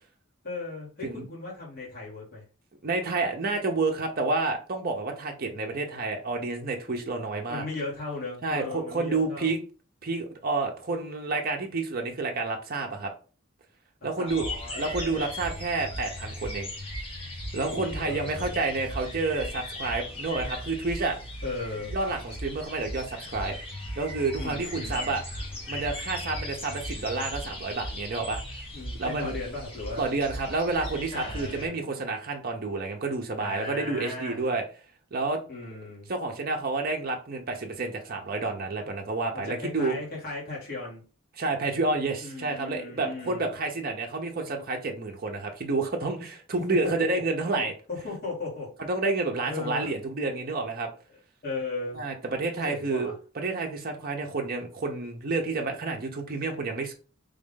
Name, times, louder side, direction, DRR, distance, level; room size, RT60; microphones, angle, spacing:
voice 1, 0.4-2.4 7.5-9.5 14.2-15.3 17.7-18.5 21.4-21.9 24.4-25.1 28.7-30.1 31.1-31.8 33.4-34.4 35.5-36.1 39.3-41.0 42.2-43.5 46.8-46.9 47.5-47.6 47.9-48.7 49.5-50.0 51.4-52.0 52.6-53.1, left 3 dB, 45° left, -5 dB, 1.7 m, -36 dB
voice 2, 2.8-7.6 8.4-9.6 10.0-13.1 14.0-16.7 17.5-21.2 21.9-23.6 24.0-25.2 25.7-28.4 29.0-29.4 30.0-34.6 35.1-35.4 36.1-40.0 41.4-47.7 48.9-50.9 51.9-56.9, right 3 dB, 40° right, 3 dB, 0.6 m, -29 dB
sound 1, 14.3-31.7, left 1 dB, 25° left, 0.9 m, -37 dB
3.4 x 2.5 x 3.6 m, 0.37 s
head